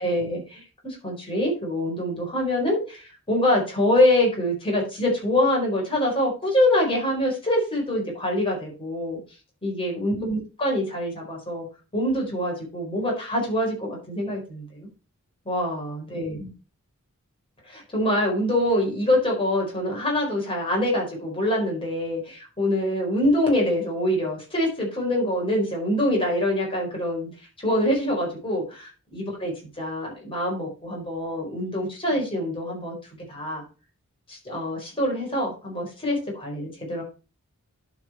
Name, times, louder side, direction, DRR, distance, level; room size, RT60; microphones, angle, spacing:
voice 1, 0.0-9.2 9.6-11.7 11.9-14.9 15.4-16.5 17.7-27.3 27.6-33.0 33.3-33.6 34.3-37.0, left 1 dB, 25° left, -1 dB, 4.5 m, -25 dB
11.5 x 5.4 x 4.4 m, 0.33 s
head